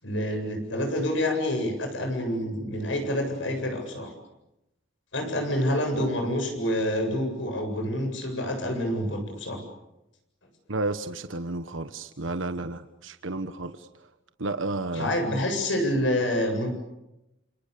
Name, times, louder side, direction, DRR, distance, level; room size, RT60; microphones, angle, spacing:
voice 1, 0.0-4.1 5.1-9.6 14.9-16.7, left 1 dB, 70° left, 5 dB, 7.9 m, -27 dB
voice 2, 10.7-13.9 14.4-15.1, right 2 dB, 80° right, 9 dB, 1.3 m, -32 dB
29.0 x 28.5 x 6.9 m, 0.92 s
head